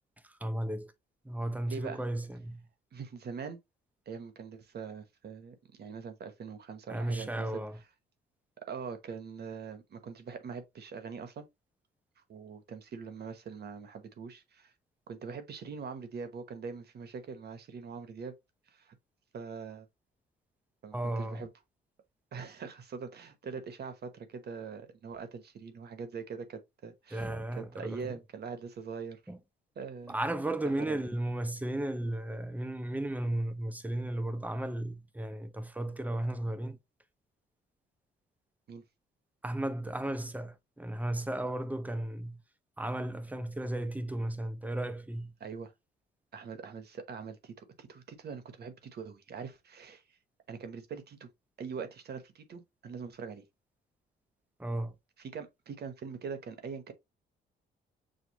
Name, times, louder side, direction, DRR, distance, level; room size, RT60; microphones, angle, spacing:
voice 1, 0.4-0.9 1.2-2.7 6.9-7.8 20.9-21.5 27.1-28.1 29.3-29.4 30.1-36.8 39.4-42.4 42.8-45.3 54.6-55.0, right 1 dB, 10° right, 0.6 m, -34 dB
voice 2, 1.7-2.0 2.9-3.6 4.1-7.5 8.7-11.5 12.2-14.7 15.1-18.3 18.7-19.0 19.3-19.9 20.8-21.5 22.3-27.3 27.6-29.2 29.8-30.2 30.8-31.0 38.7-38.8 45.4-45.7 46.3-50.0 50.5-51.3 51.6-53.4 55.2-56.9, right 5 dB, 55° right, 1.0 m, -43 dB
6.5 x 2.3 x 2.9 m
cardioid pair, 90°, 20 cm